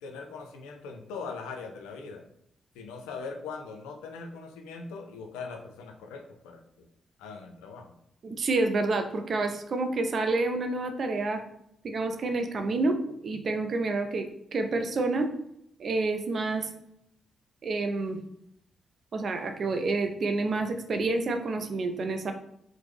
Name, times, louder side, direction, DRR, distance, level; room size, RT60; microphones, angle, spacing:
voice 1, 0.0-2.2 2.7-6.9 7.2-8.0, left 4 dB, 85° left, 3 dB, 0.3 m, -41 dB
voice 2, 8.2-11.4 11.8-13.0 13.2-14.3 14.5-15.3 15.8-16.7 17.6-18.2 19.1-22.3, right 3 dB, 55° right, 6 dB, 0.4 m, -28 dB
3.1 x 2.0 x 3.3 m, 0.75 s
hypercardioid pair, 40°, 0 cm